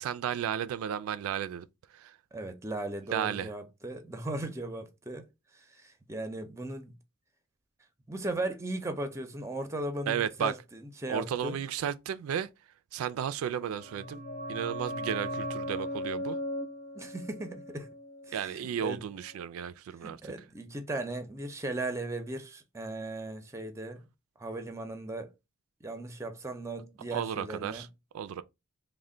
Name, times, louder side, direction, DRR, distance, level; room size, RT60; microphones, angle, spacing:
voice 1, 0.0-1.7 1.9-2.2 3.1-3.5 10.1-10.5 11.1-12.5 12.9-14.2 14.5-16.4 18.3-20.3 27.1-27.9 28.1-28.4, right 9 dB, 85° right, 0.3 m, -33 dB
voice 2, 2.3-5.3 5.5-6.9 8.1-11.6 16.9-17.9 18.3-19.0 20.0-24.0 24.4-25.3 25.8-27.9, right 2 dB, 15° right, 0.5 m, -37 dB
sound 1, 13.6-19.0 19.2-19.3, equal, 40° left, 0.7 m, -38 dB
3.2 x 2.1 x 3.7 m
head